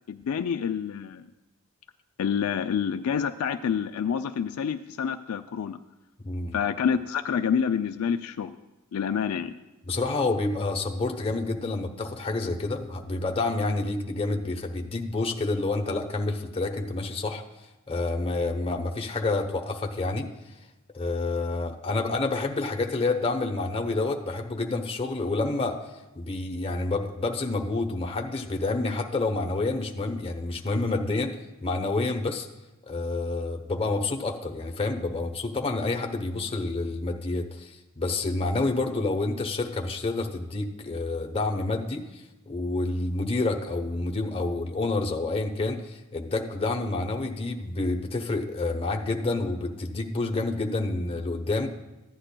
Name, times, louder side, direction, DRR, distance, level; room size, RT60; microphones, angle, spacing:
voice 1, 0.1-1.3 2.2-5.8 6.5-8.6 8.9-9.5, left 7 dB, 70° left, 8 dB, 0.4 m, -28 dB
voice 2, 9.8-17.4 17.9-20.3 20.9-25.8 26.1-31.4 31.6-32.5 32.9-42.0 42.5-51.7, left 2 dB, 25° left, 2 dB, 0.8 m, -28 dB
15.0 x 10.0 x 2.2 m, 1.1 s
head